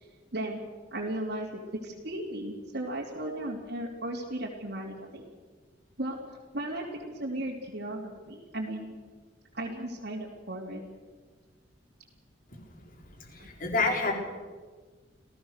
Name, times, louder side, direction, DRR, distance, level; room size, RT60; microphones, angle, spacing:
voice 1, 0.3-0.6 0.9-5.3 6.0-6.2 6.5-8.9 9.5-10.8 13.4-13.5, right 1 dB, 65° right, -5 dB, 3.3 m, -36 dB
voice 2, 13.2-14.1, left 3 dB, 50° left, 2 dB, 4.1 m, -28 dB
28.5 x 16.5 x 6.7 m, 1.4 s
head